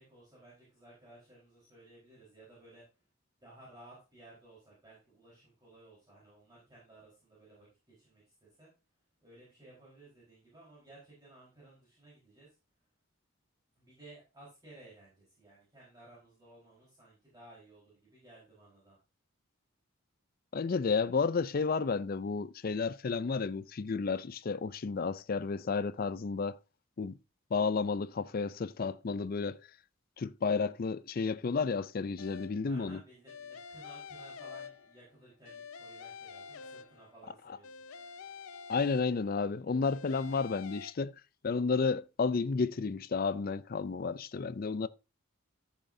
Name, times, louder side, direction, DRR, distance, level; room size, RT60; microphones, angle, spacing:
voice 1, 0.0-2.8 3.4-8.7 9.2-12.5 13.7-19.0 32.6-37.8, right 2 dB, 20° right, 4.3 m, -57 dB
voice 2, 20.5-26.6 27.0-27.1 27.5-29.6 30.2-33.0 38.7-41.1 41.4-44.9, left 4 dB, 45° left, 0.4 m, -32 dB
sound 1, 32.2-32.7 33.3-35.1 35.4-37.2 37.6-39.4 39.8-40.9, left 5 dB, 85° left, 0.6 m, -48 dB
13.5 x 7.4 x 2.7 m
head